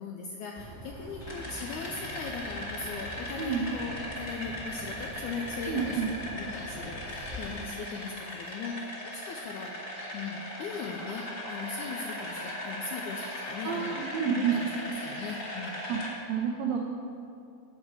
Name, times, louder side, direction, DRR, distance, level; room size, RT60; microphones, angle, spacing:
voice 1, 0.0-8.9 9.1-9.7 10.1-14.7 15.0-15.8, left 5 dB, 85° left, 1 dB, 1.8 m, -39 dB
sound 1, 0.6-7.6, equal, 15° right, 1.1 m, -44 dB
sound 2, 1.2-16.1, left 1 dB, 40° left, 1.5 m, -39 dB
voice 2, 5.7-6.1 13.6-14.5 15.9-16.0 16.3-16.8, right 7 dB, 85° right, 0 dB, 1.5 m, -29 dB
9.8 x 5.0 x 7.3 m, 2.5 s
omnidirectional pair, 4.0 m